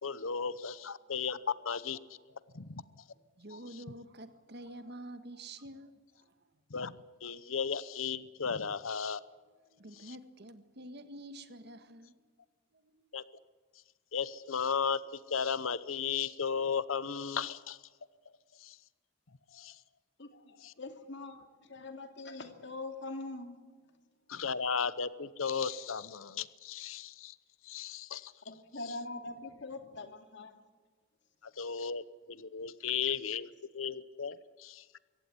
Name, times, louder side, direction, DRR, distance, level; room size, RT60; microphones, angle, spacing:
voice 1, 0.0-2.0 2.5-3.0 3.5-3.8 6.7-6.9 7.2-9.2 9.9-10.2 13.1-13.2 14.1-17.8 18.6-18.8 19.5-19.8 20.6-20.7 24.3-27.4 27.6-28.3 28.8-29.0 31.4-33.5 33.7-34.8, left 6 dB, 90° left, 0.9 m, -35 dB
voice 2, 3.4-5.9 9.7-12.3 12.7-13.0, right 1 dB, 55° right, 1.7 m, -48 dB
voice 3, 20.2-23.6 28.5-30.6, left 2 dB, 60° left, 2.5 m, -43 dB
23.5 x 17.0 x 9.8 m
head